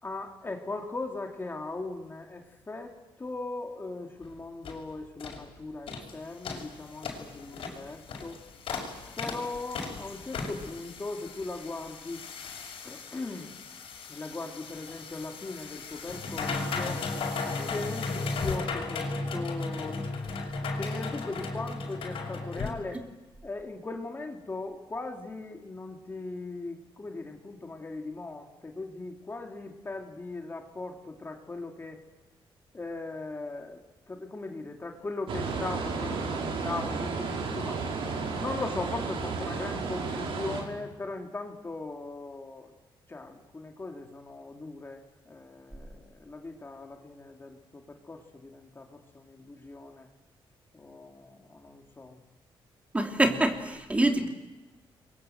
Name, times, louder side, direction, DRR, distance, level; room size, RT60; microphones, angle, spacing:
voice 1, 0.0-8.4 9.2-12.2 12.8-13.6 14.1-17.0 17.6-20.0 20.8-23.0 23.4-32.0 32.7-37.8 38.4-42.7 43.1-50.1 50.7-52.2 54.2-54.3, left 3 dB, 25° left, 3 dB, 2.6 m, -39 dB
sound 1, 4.2-4.3 4.6-4.8 5.2-5.4 5.9-6.1 6.4-22.7, left 3 dB, 75° left, 6.2 m, -36 dB
sound 2, 35.3-40.6, right 4 dB, 75° right, 5.7 m, -33 dB
voice 2, 52.9-54.3, right 1 dB, 15° right, 4 dB, 2.9 m, -25 dB
30.0 x 23.0 x 7.9 m, 1.1 s
cardioid pair, 125°, 9 cm